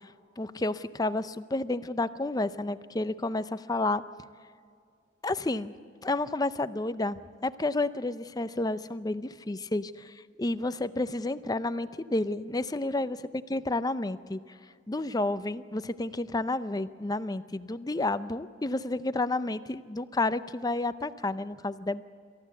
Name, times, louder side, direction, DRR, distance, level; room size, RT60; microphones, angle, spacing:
voice 1, 0.4-4.0 5.2-5.7 6.0-13.2 13.5-14.4 14.9-22.0, left 2 dB, 20° left, 13 dB, 0.6 m, -30 dB
27.0 x 14.5 x 8.4 m, 2.2 s
head